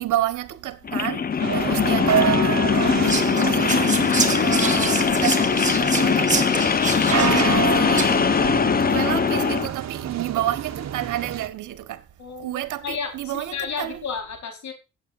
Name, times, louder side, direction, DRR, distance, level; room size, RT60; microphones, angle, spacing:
voice 1, 0.0-3.8 4.4-6.5 6.9-8.4 8.9-12.0 12.4-14.0, right 13 dB, 80° right, 1.4 m, -30 dB
sound 1, 0.8-9.7, left 6 dB, 30° left, 0.7 m, -21 dB
sound 2, 1.4-11.5, right 9 dB, 60° right, 1.4 m, -28 dB
Whispering, 3.0-8.4, right 4 dB, 25° right, 2.4 m, -28 dB
voice 2, 12.2-14.7, left 6 dB, 65° left, 4.6 m, -32 dB
16.5 x 8.4 x 2.6 m
cardioid pair, 90°, 30 cm